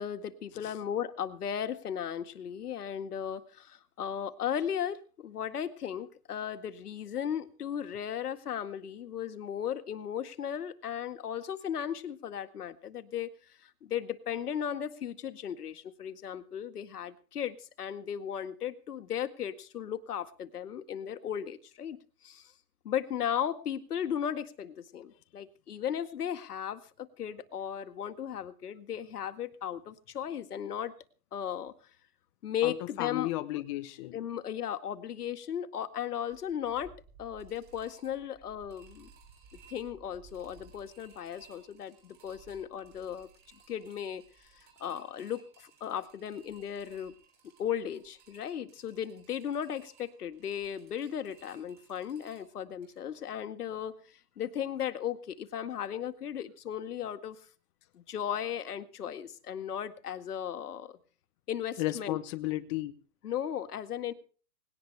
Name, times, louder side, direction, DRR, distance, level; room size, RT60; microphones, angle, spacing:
voice 1, 0.0-22.0 22.2-22.5 22.8-30.9 31.3-31.7 32.4-33.3 34.1-36.9 37.2-39.1 39.7-43.3 43.7-44.2 44.5-47.1 47.6-57.4 57.9-61.0 61.5-62.2 63.2-64.1, left 9 dB, 75° left, 10 dB, 2.0 m, -36 dB
voice 2, 32.6-34.2 61.8-62.9, left 17 dB, 20° left, 10 dB, 0.7 m, -34 dB
sound 1, 36.3-53.0, right 5 dB, 20° right, 7.4 m, -59 dB
19.5 x 17.5 x 3.4 m, 0.39 s
hypercardioid pair, 155°, 46 cm